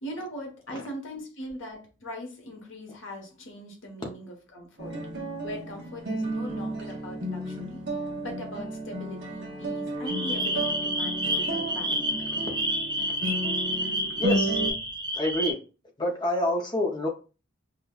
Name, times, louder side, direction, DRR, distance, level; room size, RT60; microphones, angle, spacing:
voice 1, 0.0-12.1, equal, 65° left, 1.1 m, -40 dB
sound 1, 4.8-14.7, right 1 dB, 60° right, 0.9 m, -33 dB
sound 2, 10.1-15.5, right 1 dB, 20° right, 0.6 m, -29 dB
voice 2, 14.2-14.6 15.1-15.6 16.0-17.1, left 1 dB, 25° left, 0.5 m, -28 dB
5.5 x 2.1 x 2.3 m
head